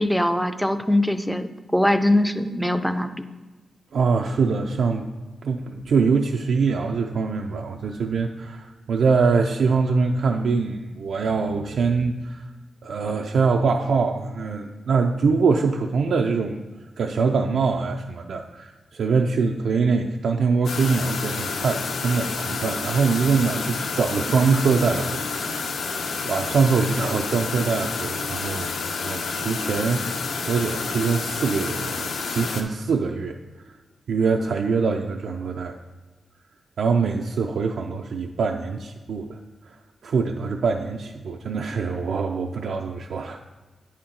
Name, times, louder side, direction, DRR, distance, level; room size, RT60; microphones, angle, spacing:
voice 1, 0.0-3.1, left 1 dB, ahead, 9 dB, 0.3 m, -22 dB
voice 2, 3.9-5.1 5.4-12.4 12.8-16.6 17.0-25.8 26.2-28.7 29.0-30.0 30.5-33.4 34.1-35.8 36.8-39.4 40.0-43.4, right 5 dB, 80° right, 2 dB, 0.4 m, -23 dB
sound 1, 20.6-32.6, left 4 dB, 85° left, 0.7 m, -29 dB
9.2 x 4.3 x 3.8 m, 1.2 s
wide cardioid pair, 175°, 0 cm